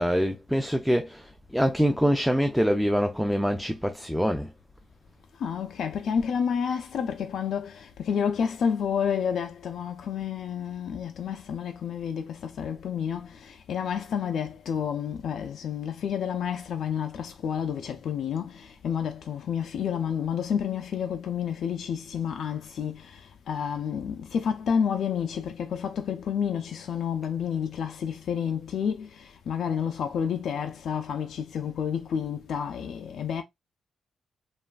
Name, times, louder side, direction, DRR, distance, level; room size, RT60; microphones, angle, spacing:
voice 1, 0.0-4.5, equal, ahead, 0.3 m, -25 dB
voice 2, 5.3-33.4, left 7 dB, 75° left, 0.3 m, -30 dB
3.1 x 2.3 x 2.4 m
cardioid pair, 105°, 0 cm